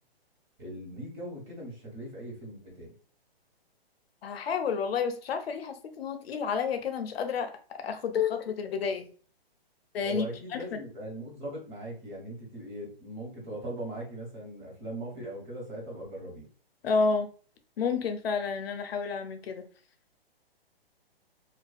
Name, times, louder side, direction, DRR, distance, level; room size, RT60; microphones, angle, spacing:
voice 1, 0.6-3.0 10.0-16.5, right 1 dB, 45° right, 1.4 m, -40 dB
voice 2, 4.2-9.1 9.9-10.8 16.8-17.3 17.8-19.6, left 5 dB, 70° left, 0.5 m, -30 dB
2.4 x 2.4 x 2.3 m
hypercardioid pair, 155°, 31 cm